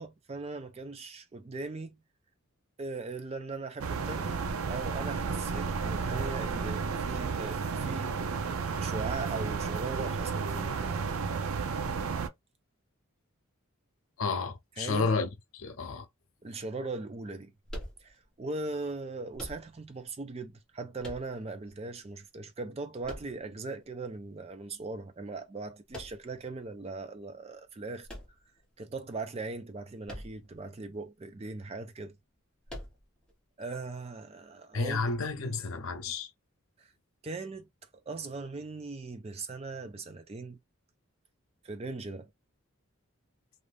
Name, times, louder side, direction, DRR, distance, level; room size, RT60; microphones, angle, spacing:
voice 1, 0.0-2.0 2.8-4.3 4.7-8.2 8.8-10.9 14.8-15.1 16.4-17.5 18.0-28.1 28.8-32.2 33.6-35.1 35.4-35.6 36.8-36.9 37.2-37.7 37.9-40.6 41.6-42.3, right 3 dB, 30° right, 0.4 m, -39 dB
sound 1, 3.8-12.3, right 5 dB, 85° right, 0.5 m, -32 dB
voice 2, 14.2-16.1 34.7-36.3, left 4 dB, 75° left, 0.5 m, -31 dB
sound 2, 17.7-18.5 19.3-20.0 21.0-21.7 23.0-23.8 25.9-26.5 28.0-28.9 30.0-30.6 30.9-31.0 32.7-33.3, equal, 5° left, 1.0 m, -44 dB
2.6 x 2.4 x 3.3 m
head